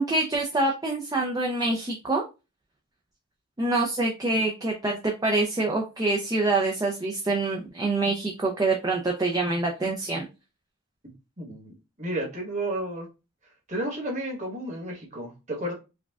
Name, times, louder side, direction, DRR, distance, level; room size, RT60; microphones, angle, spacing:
voice 1, 0.0-2.2 3.6-10.3, right 2 dB, 15° right, -1 dB, 0.4 m, -26 dB
voice 2, 11.4-13.1 13.7-15.7, right 1 dB, 35° right, -2 dB, 1.3 m, -32 dB
4.9 x 2.2 x 2.3 m, 0.28 s
head